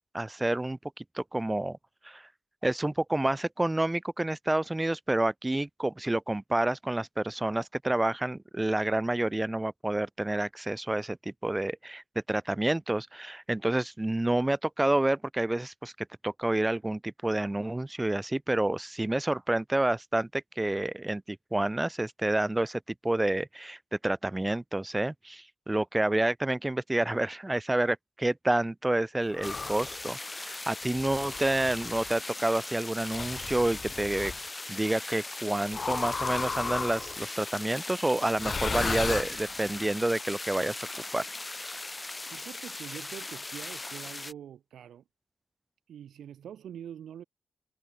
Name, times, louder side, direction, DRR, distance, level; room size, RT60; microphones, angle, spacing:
voice 1, 0.1-1.8 2.0-2.3 2.6-12.0 12.3-15.9 16.2-34.3 34.7-40.8 41.1-41.3, right 1 dB, 15° right, 0.5 m, -29 dB
sound 1, 29.3-30.0 30.9-32.1 33.1-34.4 35.7-37.2 38.3-39.8, left 4 dB, 40° left, 0.5 m, -34 dB
sound 2, 29.4-44.3, left 2 dB, 20° left, 1.2 m, -39 dB
voice 2, 42.3-45.0 45.9-47.2, right 9 dB, 90° right, 2.3 m, -44 dB
cardioid pair, 105°, 0 cm